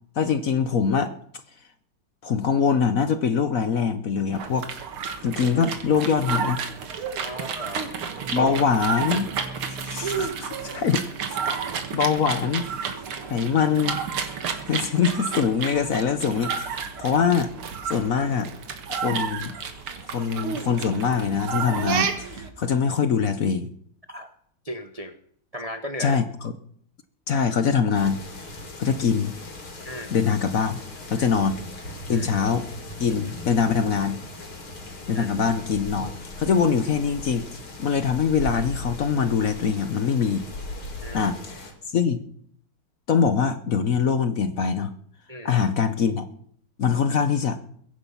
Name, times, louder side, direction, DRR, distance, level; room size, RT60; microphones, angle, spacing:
voice 1, 0.2-1.1 2.2-4.7 5.2-6.6 8.3-9.3 9.7-11.4 11.9-12.7 13.3-14.0 14.7-17.5 17.8-18.5 18.9-19.6 20.1-23.7 26.0-26.5 27.3-28.5 28.8-29.4 30.1-30.8 31.1-31.6 32.1-32.7 33.0-34.2 35.1-40.4 41.1-42.2 43.1-44.9 45.4-46.2 46.8-47.6, left 6 dB, 55° left, 11 dB, 1.0 m, -23 dB
sound 1, 4.3-22.5, right 6 dB, 90° right, 2.5 m, -31 dB
voice 2, 7.2-7.9 8.3-8.5 24.1-24.3 24.6-25.1 25.5-26.2 29.8-30.1 31.2-31.3 32.1-32.3 35.1-35.3 41.0-41.3 45.3-45.5, equal, 55° right, 8 dB, 0.4 m, -35 dB
sound 2, 27.9-41.7, left 2 dB, 85° left, 4.0 m, -38 dB
22.0 x 10.5 x 5.6 m, 0.64 s
omnidirectional pair, 2.3 m